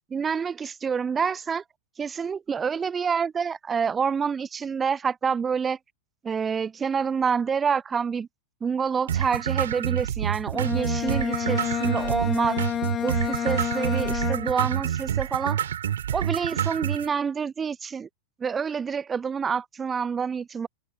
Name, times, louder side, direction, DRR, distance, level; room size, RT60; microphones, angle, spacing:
voice 1, 0.1-1.6 2.0-5.8 6.2-8.3 8.6-12.6 13.0-15.6 16.1-18.1 18.4-20.7, right 6 dB, 20° right, 0.6 m, -27 dB
sound 1, 9.1-17.1, right 10 dB, 65° right, 3.4 m, -28 dB
Bowed string instrument, 10.5-14.8, left 9 dB, 25° left, 2.2 m, -29 dB
figure-of-eight pair, 90°, 0 cm